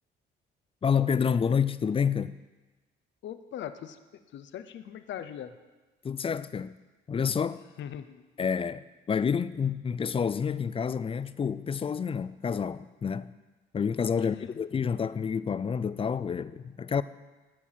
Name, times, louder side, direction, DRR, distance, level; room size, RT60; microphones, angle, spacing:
voice 1, 0.8-2.4 6.0-6.7 7.1-7.6 8.4-13.3 13.7-17.0, left 6 dB, 30° left, 0.4 m, -28 dB
voice 2, 3.2-4.0 4.3-5.5 7.8-8.2 14.2-14.6, left 10 dB, 70° left, 0.7 m, -40 dB
13.0 x 4.6 x 7.3 m
cardioid pair, 90°, 20 cm